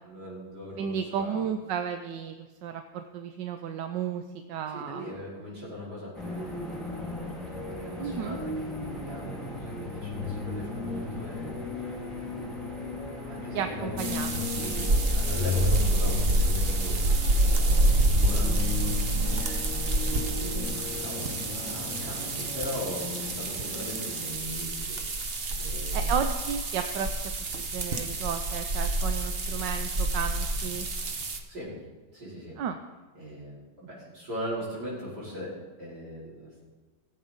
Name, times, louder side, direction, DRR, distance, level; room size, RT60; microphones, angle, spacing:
voice 1, 0.0-1.4 4.7-6.9 7.5-11.5 12.1-12.5 13.3-19.4 20.3-25.0 25.6-26.1 31.5-31.8 32.1-32.6 33.2-36.6, equal, 70° right, -7 dB, 5.7 m, -40 dB
voice 2, 0.8-5.1 8.0-8.4 13.5-14.5 25.9-27.1 27.6-30.9 32.6-32.8, right 8 dB, 90° right, 7 dB, 1.4 m, -33 dB
sound 1, 6.1-24.3, left 3 dB, ahead, 3.0 m, -35 dB
sound 2, 14.0-31.4, right 1 dB, 40° right, 1.1 m, -28 dB
18.0 x 8.3 x 5.3 m, 1.4 s
omnidirectional pair, 1.9 m